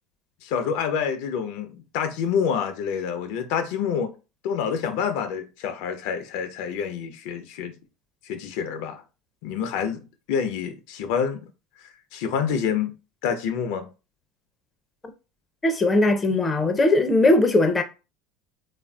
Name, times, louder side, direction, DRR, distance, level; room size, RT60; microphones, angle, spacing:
voice 1, 0.4-4.1 4.4-7.7 8.2-9.0 9.4-10.0 10.3-11.4 11.8-12.9 13.2-13.9, left 7 dB, 70° left, 0.5 m, -27 dB
voice 2, 15.6-17.8, left 2 dB, 20° left, 0.6 m, -19 dB
3.3 x 2.4 x 2.3 m
hypercardioid pair, 85°, 0 cm